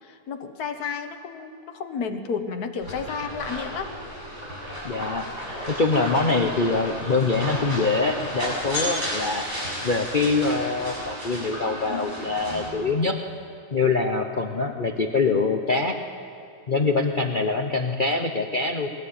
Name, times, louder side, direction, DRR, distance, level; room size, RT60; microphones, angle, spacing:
voice 1, 0.0-3.9, left 5 dB, 60° left, 5 dB, 1.8 m, -32 dB
sound 1, 2.8-12.7, equal, 65° right, 7.6 m, -33 dB
voice 2, 4.8-5.3 5.7-9.5 9.8-13.2 13.7-16.0 16.7-18.9, left 3 dB, 40° left, 4 dB, 0.8 m, -24 dB
21.5 x 18.0 x 8.7 m, 2.7 s
omnidirectional pair, 1.9 m